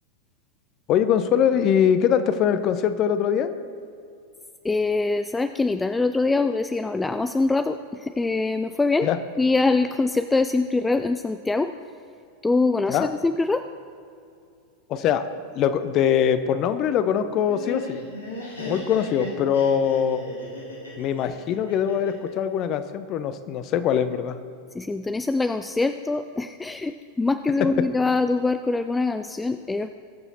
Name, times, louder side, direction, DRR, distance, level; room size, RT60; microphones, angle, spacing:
voice 1, 0.9-3.5 9.0-9.2 12.9-13.1 14.9-15.2 15.5-18.0 18.7-20.2 21.0-24.4 27.6-27.7, left 8 dB, 35° left, 11 dB, 0.7 m, -22 dB
voice 2, 4.6-9.1 9.4-11.7 12.4-13.6 24.7-29.9, left 3 dB, 10° left, 10 dB, 0.4 m, -23 dB
Laughter, 17.2-22.3, left 1 dB, 80° left, 2.7 m, -36 dB
21.0 x 7.1 x 4.2 m, 2.4 s
figure-of-eight pair, 90°, 0 cm